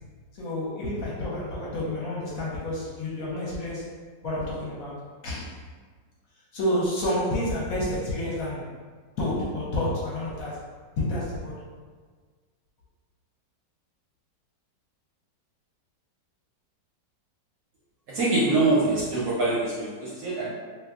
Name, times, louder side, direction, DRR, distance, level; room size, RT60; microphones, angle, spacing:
voice 1, 0.4-3.9 4.2-5.0 5.2-5.5 6.5-8.7 9.2-10.6 11.0-11.5, left 1 dB, 60° left, -6 dB, 1.0 m, -29 dB
voice 2, 18.1-20.5, right 2 dB, 65° right, -7 dB, 0.9 m, -24 dB
2.8 x 2.3 x 3.5 m, 1.5 s
omnidirectional pair, 2.0 m